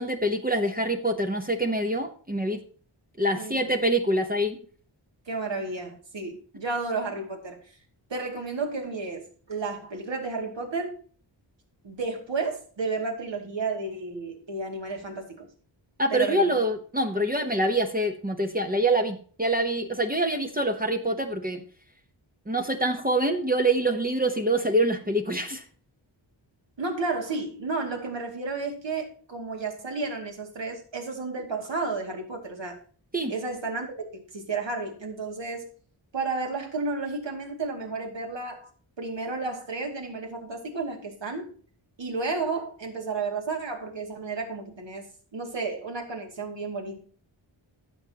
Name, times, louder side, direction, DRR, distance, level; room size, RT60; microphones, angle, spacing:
voice 1, 0.0-2.6 3.2-4.6 16.0-21.6 22.5-25.6 33.1-33.3, right 1 dB, 20° right, 4 dB, 0.9 m, -25 dB
voice 2, 3.3-3.7 5.3-7.6 8.1-9.2 9.5-11.0 11.8-15.5 16.1-16.6 26.8-32.8 33.3-33.9 34.1-35.6 36.1-38.7 39.0-41.5 42.0-45.1 45.3-47.0, right 3 dB, 65° right, 2 dB, 2.5 m, -32 dB
15.0 x 6.9 x 2.9 m, 0.43 s
wide cardioid pair, 110°, 47 cm